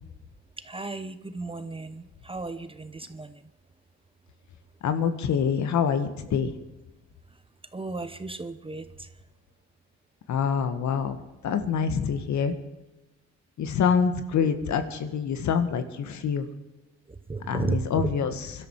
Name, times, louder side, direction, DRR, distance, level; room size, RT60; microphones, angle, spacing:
voice 1, 0.6-3.5 7.7-9.1 17.1-18.1, right 3 dB, 20° right, 11 dB, 0.9 m, -34 dB
voice 2, 4.8-6.5 10.3-11.2 11.4-12.5 13.6-16.5 17.5-18.7, left 6 dB, 70° left, 9 dB, 1.9 m, -26 dB
23.0 x 12.5 x 5.0 m, 1.0 s
cardioid pair, 90°, 30 cm